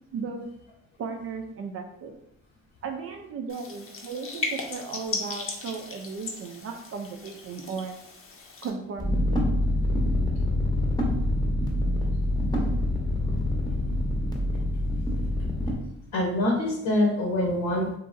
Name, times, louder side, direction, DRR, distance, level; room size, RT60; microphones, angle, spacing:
voice 1, 0.1-0.5 1.0-2.2 2.8-8.0 8.6-9.4, right 5 dB, 50° right, 4 dB, 0.4 m, -36 dB
sound 1, 3.5-8.7, left 4 dB, 45° left, 0.6 m, -37 dB
sound 2, 9.0-15.8, left 1 dB, 15° left, 0.8 m, -25 dB
voice 2, 16.1-18.0, left 1 dB, 75° left, -2 dB, 0.9 m, -25 dB
2.9 x 2.6 x 2.5 m, 0.78 s
cardioid pair, 90°, 30 cm